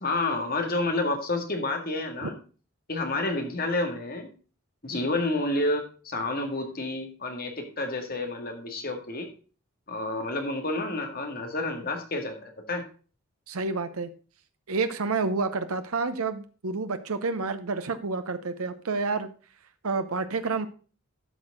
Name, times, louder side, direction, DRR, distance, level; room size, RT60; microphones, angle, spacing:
voice 1, 0.0-2.4 2.9-4.3 4.8-9.3 9.9-12.8, left 2 dB, 45° left, 4 dB, 1.9 m, -29 dB
voice 2, 13.5-14.1 14.7-19.3 19.8-20.7, right 4 dB, 85° right, 10 dB, 0.8 m, -29 dB
12.0 x 6.3 x 3.6 m, 0.37 s
head